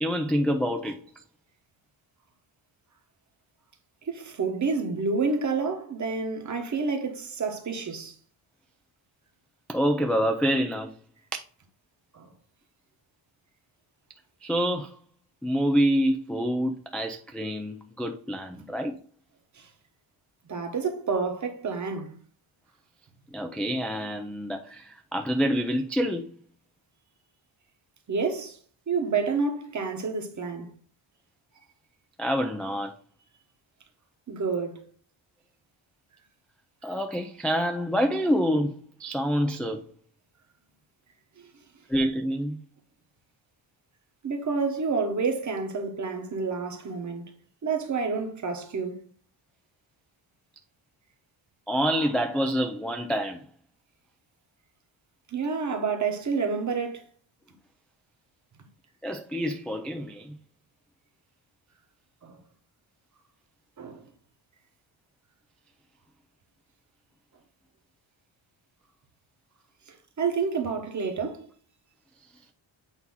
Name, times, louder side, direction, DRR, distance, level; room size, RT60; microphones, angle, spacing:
voice 1, 0.0-1.0 9.7-10.9 11.3-11.4 14.4-15.0 15.4-19.0 23.3-26.3 32.2-32.9 36.8-39.8 41.9-42.6 51.7-53.5 59.0-60.4 71.0-71.1, equal, ahead, 0.4 m, -27 dB
voice 2, 4.0-8.1 12.1-12.3 18.6-18.7 19.5-19.7 20.5-22.1 28.1-28.6 28.9-30.7 34.3-34.8 44.2-47.3 47.6-49.0 55.3-57.1 62.2-62.4 63.8-64.0 69.9-71.5, right 4 dB, 35° right, 1.1 m, -29 dB
8.2 x 2.8 x 5.5 m
wide cardioid pair, 165°, 48 cm